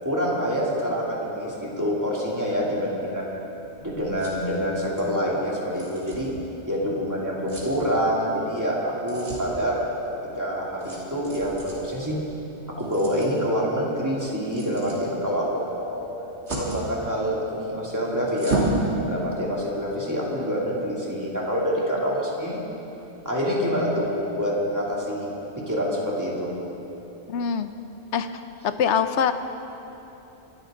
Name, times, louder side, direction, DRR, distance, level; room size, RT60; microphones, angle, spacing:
voice 1, 0.0-3.3 3.8-6.3 6.7-9.8 10.3-12.2 12.8-16.1 16.5-18.7 19.1-22.7 23.2-25.3 25.7-26.5, equal, 15° right, -6 dB, 2.9 m, -26 dB
sound 1, 3.4-18.8, right 2 dB, 65° right, 3.4 m, -37 dB
voice 2, 27.3-27.7 28.1-28.3 28.6-29.3, left 7 dB, 75° left, 10 dB, 1.0 m, -23 dB
25.0 x 13.0 x 3.9 m, 3.0 s
omnidirectional pair, 1.2 m